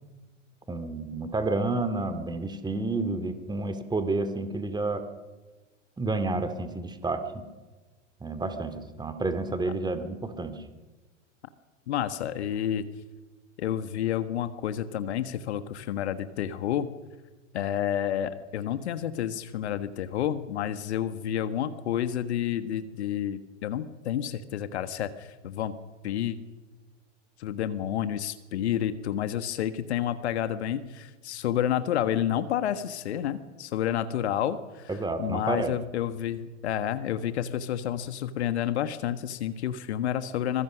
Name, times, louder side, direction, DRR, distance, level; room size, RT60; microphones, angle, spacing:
voice 1, 0.7-5.0 6.0-7.4 8.2-10.6 34.9-35.7, right 3 dB, 10° right, 9 dB, 2.3 m, -30 dB
voice 2, 11.9-12.9 13.6-16.9 17.5-25.7 26.0-26.4 27.4-34.9 35.2-40.6, left 10 dB, 60° left, 12 dB, 1.5 m, -30 dB
25.0 x 22.0 x 6.4 m, 1.2 s
figure-of-eight pair, 90°, 37 cm